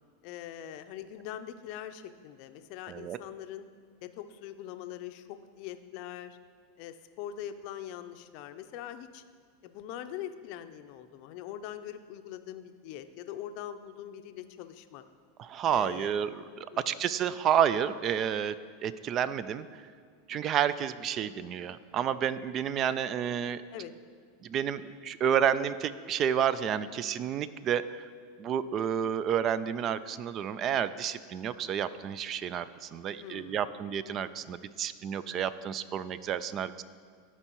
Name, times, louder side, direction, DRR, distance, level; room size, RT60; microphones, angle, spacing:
voice 1, 0.2-3.7 4.0-6.4 6.8-9.2 9.6-15.0 15.7-16.2 16.7-17.1 23.7-23.9 33.2-33.7, left 11 dB, 55° left, 9 dB, 0.5 m, -42 dB
voice 2, 15.4-16.3 16.6-18.5 18.8-19.7 20.3-23.6 24.4-28.0 28.4-36.8, right 8 dB, 40° right, 15 dB, 0.3 m, -30 dB
13.5 x 4.5 x 3.0 m, 2.1 s
hypercardioid pair, 110°, 0 cm